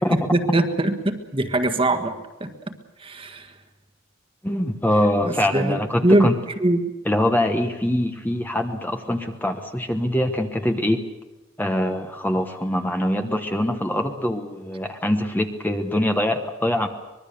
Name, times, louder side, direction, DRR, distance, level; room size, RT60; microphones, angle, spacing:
voice 1, 0.1-2.1 2.4-2.5 3.0-3.5 5.2-5.8 6.0-6.3 6.6-6.9, right 1 dB, 25° right, 7 dB, 1.6 m, -21 dB
voice 2, 4.4-6.3 7.0-11.0 11.6-16.9, left 1 dB, 10° left, 5 dB, 1.1 m, -23 dB
24.5 x 21.5 x 6.9 m, 1.1 s
head